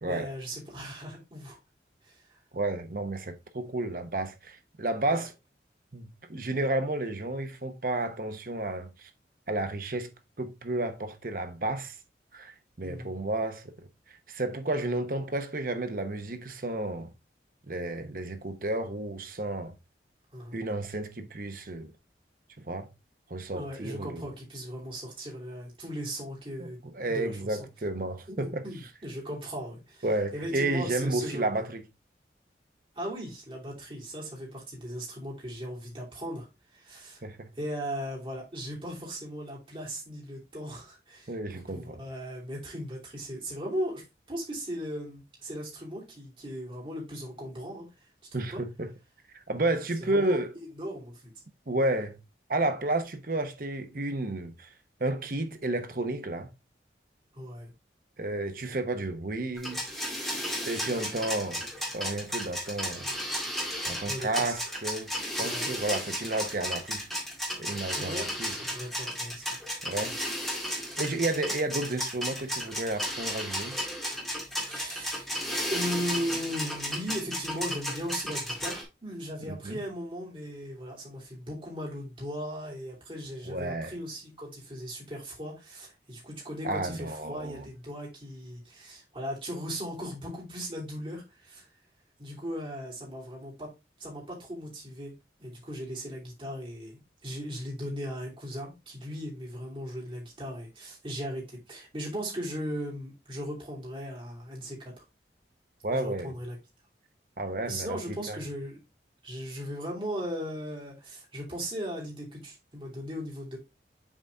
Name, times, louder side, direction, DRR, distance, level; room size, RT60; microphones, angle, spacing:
voice 1, 0.1-1.6 2.0-2.4 5.1-5.3 12.8-13.2 20.3-20.6 23.5-27.6 28.3-30.1 30.3-31.6 32.9-36.5 36.7-37.2 37.5-48.1 48.4-48.6 50.0-50.4 50.8-51.3 57.3-57.7 64.1-64.5 65.4-65.7 67.9-68.3 68.6-69.4 74.6-75.3 75.7-91.7 92.2-93.7 94.0-95.1 95.4-104.9 105.9-106.6 107.7-108.8 109.2-113.6, equal, 30° right, 3.0 m, -38 dB
voice 2, 2.5-5.3 5.9-9.1 9.5-10.1 10.4-12.0 12.3-12.5 12.8-13.7 14.3-17.1 17.7-19.7 20.5-21.9 22.7-22.9 23.3-24.3 26.6-26.7 26.9-28.6 30.0-31.8 37.2-37.5 41.3-42.0 48.3-48.9 49.5-50.5 51.7-52.2 52.5-54.7 55.0-56.5 58.2-59.8 60.6-61.7 61.9-63.1 63.8-67.1 67.6-68.5 69.8-70.2 71.0-73.8 79.5-79.8 83.5-83.9 86.6-87.6 105.8-106.3 107.4-108.4, right 2 dB, 50° right, 0.9 m, -31 dB
sound 1, 59.6-78.8, equal, ahead, 2.0 m, -34 dB
7.4 x 4.1 x 3.5 m
head